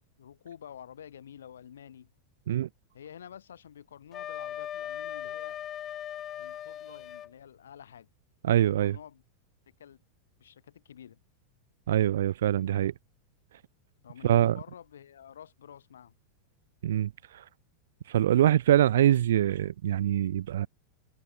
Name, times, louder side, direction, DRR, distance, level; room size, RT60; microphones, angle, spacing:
voice 1, 0.0-2.1 2.9-5.6 6.4-8.1 8.6-9.2 9.8-10.0 10.4-11.2 14.0-16.1, left 9 dB, 80° left, 7.7 m, -49 dB
Wind instrument woodwind instrument, 4.1-7.3, left 10 dB, 35° left, 2.2 m, -38 dB
voice 2, 8.4-9.0 11.9-12.9 14.2-14.6 16.8-17.4 18.1-20.7, right 11 dB, 75° right, 0.3 m, -24 dB
hypercardioid pair, 95°, 0 cm